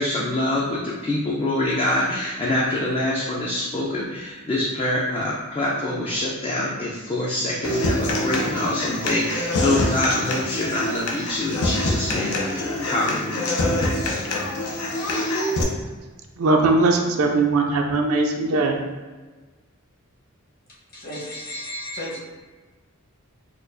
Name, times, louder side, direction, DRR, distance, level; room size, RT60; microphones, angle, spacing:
voice 1, 0.0-13.6, left 1 dB, 25° left, 0.4 m, -25 dB
Human voice / Acoustic guitar, 7.6-15.6, left 1 dB, 85° left, 0.6 m, -25 dB
voice 2, 16.4-18.8, right 3 dB, 70° right, 0.4 m, -20 dB
voice 3, 20.9-22.2, left 1 dB, 45° left, 1.1 m, -33 dB
4.3 x 2.3 x 2.5 m
head